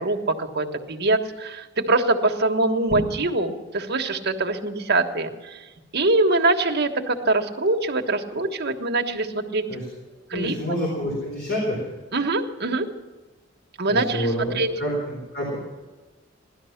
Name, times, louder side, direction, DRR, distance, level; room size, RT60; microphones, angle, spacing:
voice 1, 0.0-5.3 5.9-9.6 10.3-10.5 12.1-12.9 13.8-14.3 14.5-14.7, right 2 dB, 60° right, 3 dB, 1.4 m, -23 dB
voice 2, 10.3-11.9 13.9-15.6, equal, 55° left, -3 dB, 4.1 m, -27 dB
17.0 x 12.5 x 5.9 m, 1.2 s
head